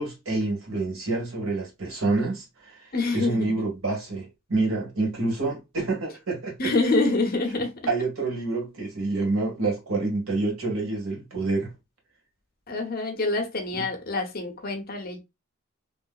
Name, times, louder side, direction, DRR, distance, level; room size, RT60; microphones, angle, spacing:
voice 1, 0.0-6.7 7.9-11.7 13.7-13.9, right 3 dB, 85° right, 1.8 m, -28 dB
voice 2, 2.9-3.5 6.6-7.7 12.7-15.2, left 3 dB, 45° left, 0.9 m, -26 dB
3.2 x 2.9 x 2.4 m
head